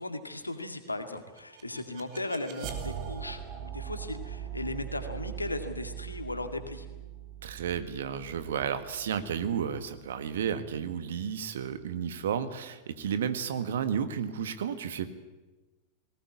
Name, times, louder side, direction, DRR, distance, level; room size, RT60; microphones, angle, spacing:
voice 1, 0.0-6.9, left 2 dB, 85° left, 7 dB, 2.2 m, -37 dB
sound 1, 1.2-10.1, right 9 dB, 45° right, 2.7 m, -41 dB
voice 2, 7.4-15.1, right 8 dB, 60° right, 11 dB, 1.7 m, -32 dB
20.0 x 19.0 x 9.7 m, 1.2 s
figure-of-eight pair, 90°, 0 cm